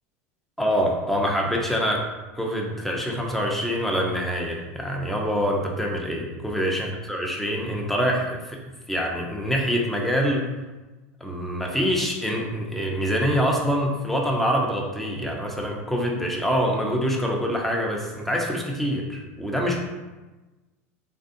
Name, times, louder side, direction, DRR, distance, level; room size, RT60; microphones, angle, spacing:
voice 1, 0.6-2.0 2.4-8.6 8.9-10.5 11.2-19.8, equal, 5° left, -1 dB, 0.6 m, -25 dB
3.2 x 2.6 x 2.5 m, 1.2 s
hypercardioid pair, 95°, 8 cm